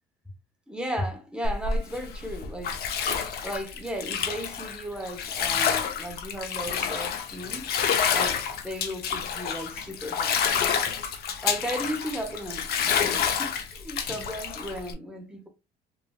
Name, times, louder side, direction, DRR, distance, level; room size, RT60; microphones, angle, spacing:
voice 1, 0.7-2.8 3.4-7.7 8.1-10.4 11.4-15.5, equal, 5° right, 0.8 m, -35 dB
Bathtub (filling or washing), 1.4-14.9, left 7 dB, 65° left, 0.6 m, -28 dB
3.2 x 2.5 x 2.3 m
cardioid pair, 110°, 17 cm